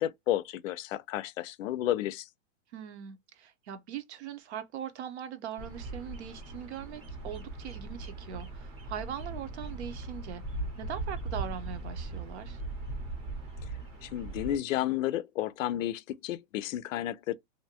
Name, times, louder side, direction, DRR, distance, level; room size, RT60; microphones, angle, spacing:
voice 1, 0.0-2.3 14.0-17.3, left 13 dB, 85° left, 0.5 m, -32 dB
voice 2, 2.7-10.4 10.8-12.6, right 9 dB, 60° right, 0.7 m, -41 dB
Bird vocalization bird call bird song, 5.6-14.6, right 2 dB, 25° right, 0.7 m, -39 dB
2.6 x 2.1 x 2.8 m
supercardioid pair, 175°, 38 cm